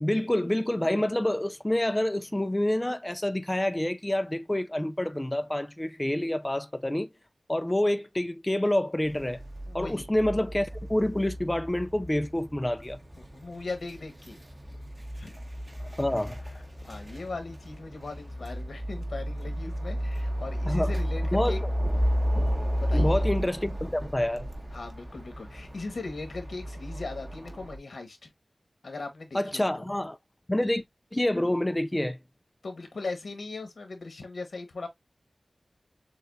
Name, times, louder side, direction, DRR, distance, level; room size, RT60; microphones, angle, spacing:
voice 1, 0.0-7.1 7.5-9.4 9.7-13.0 16.0-16.4 20.7-20.9 21.3-21.6 22.9-24.5 29.3-30.2 30.5-30.8 31.1-32.2, left 1 dB, 20° left, 0.4 m, -27 dB
sound 1, 9.1-27.8, equal, 30° right, 1.2 m, -32 dB
voice 2, 9.7-10.0 13.2-14.4 15.1-15.3 16.9-21.6 22.8-23.2 24.7-28.3 28.8-29.8 32.6-34.9, left 3 dB, 90° left, 1.3 m, -39 dB
6.8 x 2.4 x 2.6 m
wide cardioid pair, 65°, 0 cm